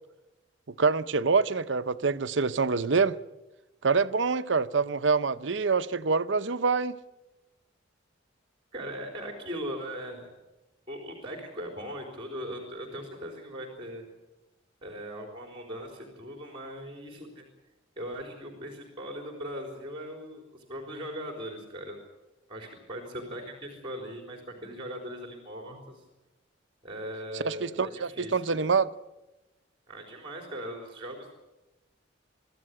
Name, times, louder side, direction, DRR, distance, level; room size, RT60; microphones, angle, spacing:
voice 1, 0.7-3.2 3.8-7.0 27.4-28.9, right 4 dB, 70° right, 0.8 m, -26 dB
voice 2, 8.7-10.3 10.9-14.1 14.8-17.4 18.0-22.0 22.5-26.0 26.8-28.7 29.9-31.3, equal, 30° right, 4.0 m, -39 dB
24.0 x 14.0 x 9.8 m
head